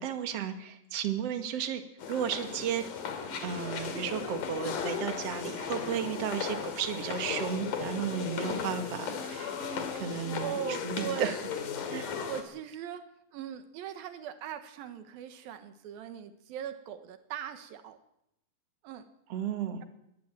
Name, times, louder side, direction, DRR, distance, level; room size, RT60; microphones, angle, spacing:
voice 1, 0.0-1.8 2.1-2.8 3.4-9.5 9.9-11.4 11.9-12.1 19.3-19.8, right 8 dB, 50° right, 7 dB, 2.5 m, -34 dB
sound 1, 2.0-12.4, left 6 dB, 65° left, 3.7 m, -36 dB
voice 2, 10.4-11.3 12.0-18.0 18.8-19.1, right 9 dB, 85° right, 9 dB, 3.1 m, -40 dB
21.5 x 14.0 x 9.0 m, 0.81 s
omnidirectional pair, 4.1 m